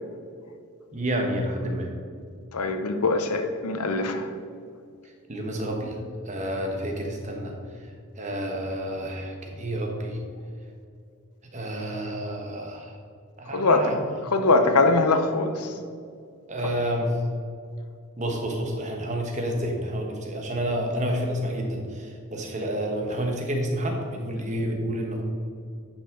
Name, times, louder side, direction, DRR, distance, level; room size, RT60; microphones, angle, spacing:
voice 1, 0.9-1.9 5.3-6.0 6.2-7.5 7.8-7.9 8.2-10.2 11.5-13.0 13.4-14.0 16.5-17.2 18.2-25.2, equal, 30° right, 2 dB, 1.1 m, -29 dB
voice 2, 2.5-4.3 13.5-13.9 14.3-15.8, left 3 dB, 85° left, 7 dB, 0.8 m, -22 dB
10.0 x 6.0 x 3.8 m, 2.3 s
head